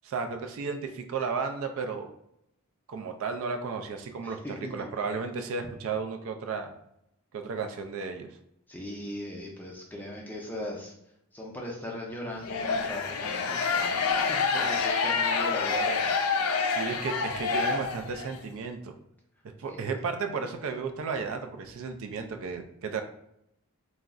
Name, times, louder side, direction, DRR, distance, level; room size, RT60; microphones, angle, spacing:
voice 1, 0.0-2.1 2.9-4.4 4.7-6.7 7.3-8.3 16.7-19.0 19.6-23.0, right 5 dB, 65° right, 6 dB, 0.3 m, -33 dB
voice 2, 4.2-4.6 8.7-10.9 11.3-16.0 19.7-19.8, left 1 dB, 10° left, -2 dB, 0.4 m, -39 dB
sound 1, 12.4-18.4, left 5 dB, 80° left, 0.4 m, -27 dB
2.3 x 2.0 x 3.6 m, 0.78 s
head